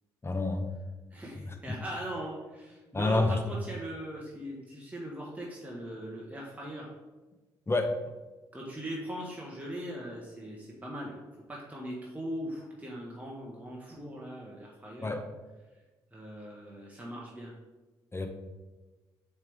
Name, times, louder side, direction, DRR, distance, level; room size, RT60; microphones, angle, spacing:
voice 1, 0.2-0.7 2.9-3.4 7.7-7.9 15.0-15.2 18.1-18.3, left 2 dB, 20° left, 6 dB, 0.9 m, -27 dB
voice 2, 1.1-6.9 8.5-11.2 11.5-15.1 16.1-17.5, right 1 dB, 15° right, -3 dB, 1.3 m, -40 dB
8.0 x 3.4 x 3.6 m, 1.2 s
figure-of-eight pair, 40°, 12 cm